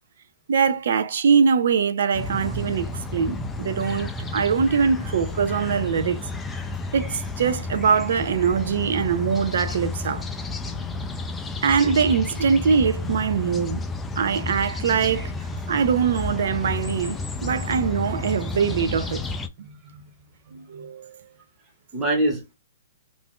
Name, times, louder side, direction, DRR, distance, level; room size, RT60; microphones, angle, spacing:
voice 1, 0.5-6.2 6.9-10.2 11.6-13.8 14.2-15.3 15.7-19.2 20.5-21.2, right 6 dB, 65° right, 0.5 m, -22 dB
sound 1, 2.1-19.5, left 3 dB, 10° left, 0.3 m, -31 dB
voice 2, 19.6-20.1 20.4-20.9 21.9-22.6, right 1 dB, 10° right, 0.8 m, -27 dB
2.6 x 2.4 x 3.5 m
hypercardioid pair, 160°, 0 cm